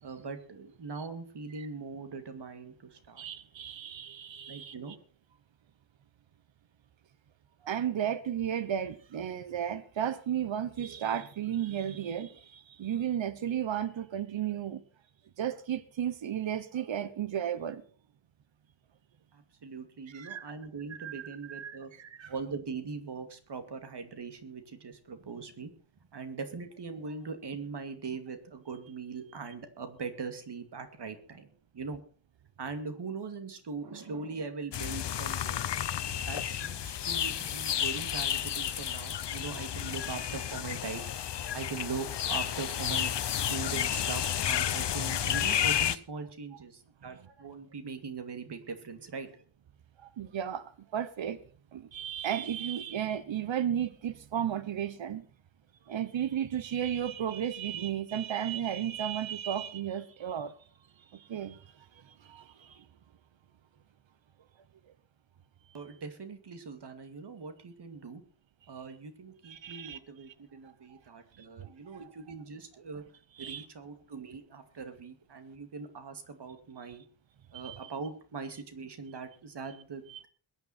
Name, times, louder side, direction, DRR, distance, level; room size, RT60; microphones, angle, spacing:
voice 1, 0.0-3.2 4.5-5.0 19.3-21.9 22.3-25.7 26.1-32.0 32.6-35.6 36.3-41.0 41.5-49.4 65.7-68.2 68.7-73.0 73.4-77.0 77.5-80.0, right 5 dB, 60° right, 2.4 m, -41 dB
voice 2, 3.2-4.7 7.6-14.8 15.4-17.8 20.1-20.5 20.9-22.3 50.0-51.4 51.7-55.2 55.9-60.6 61.1-62.8 69.4-70.0 71.4-72.1 73.4-73.6 77.5-77.9 80.1-80.3, right 9 dB, 85° right, 1.1 m, -34 dB
sound 1, 34.7-46.0, left 10 dB, 65° left, 0.8 m, -31 dB
21.5 x 9.5 x 4.3 m
wide cardioid pair, 145°, 45 cm